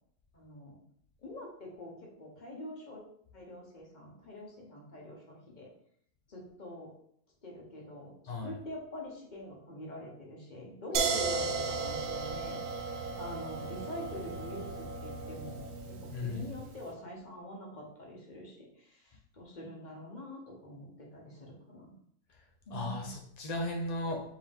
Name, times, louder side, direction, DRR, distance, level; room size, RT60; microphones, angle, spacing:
voice 1, 0.3-0.8 1.2-3.0 3.3-5.7 6.3-6.9 7.4-12.6 13.2-22.0 22.7-23.1, left 1 dB, 35° left, -1 dB, 1.0 m, -45 dB
voice 2, 8.3-8.6 16.1-16.5 22.7-24.2, left 2 dB, 75° left, 0 dB, 0.3 m, -36 dB
sound 1, 10.9-16.8, right 4 dB, 75° right, 1.1 m, -35 dB
4.6 x 3.0 x 3.5 m, 0.67 s
omnidirectional pair, 1.7 m